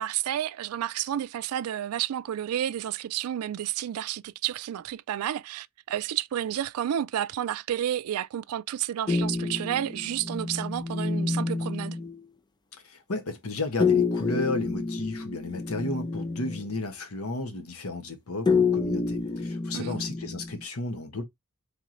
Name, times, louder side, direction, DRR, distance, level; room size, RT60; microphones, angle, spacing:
voice 1, 0.0-12.0 19.7-20.1, right 11 dB, 85° right, 0.3 m, -31 dB
sound 1, 9.1-12.2 13.8-16.7 18.5-20.6, left 4 dB, 20° left, 0.5 m, -28 dB
voice 2, 12.8-21.2, left 2 dB, 85° left, 1.1 m, -33 dB
3.7 x 3.1 x 3.8 m
head